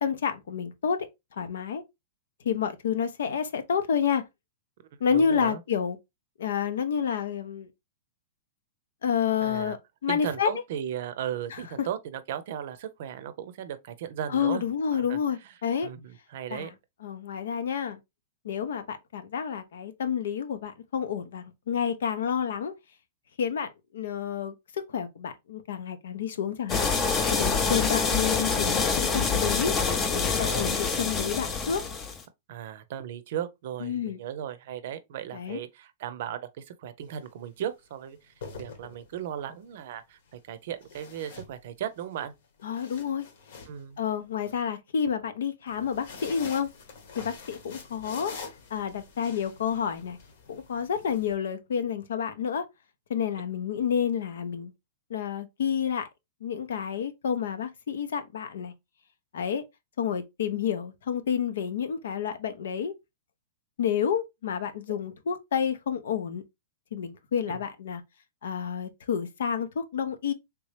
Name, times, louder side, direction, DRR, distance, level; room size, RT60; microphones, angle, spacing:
voice 1, 0.0-1.1 1.3-1.8 2.4-4.2 5.0-6.0 6.4-7.7 9.0-10.5 11.5-11.9 14.3-15.9 16.5-16.7 17.0-18.0 18.4-22.7 23.4-26.8 27.3-29.8 30.1-31.8 33.8-34.2 35.3-35.6 42.6-43.2 44.0-46.7 47.2-48.3 48.7-50.2 50.5-52.6 53.1-54.7 55.1-56.1 56.4-58.7 59.3-59.6 60.0-62.9 63.8-66.4 66.9-68.0 68.4-70.3, left 7 dB, 80° left, 0.7 m, -29 dB
voice 2, 5.1-5.6 9.4-9.8 10.1-14.6 14.9-15.2 15.8-16.7 27.6-27.9 30.4-30.8 32.5-42.3 43.7-44.0 67.5-67.6, right 10 dB, 60° right, 0.5 m, -36 dB
sound 1, 26.7-32.2, left 5 dB, 20° left, 0.5 m, -26 dB
sound 2, 37.0-37.3 38.2-39.3 40.8-42.0 42.4-44.5 45.7-51.3, left 4 dB, 65° left, 1.1 m, -45 dB
3.4 x 3.0 x 3.2 m
hypercardioid pair, 150°, 0 cm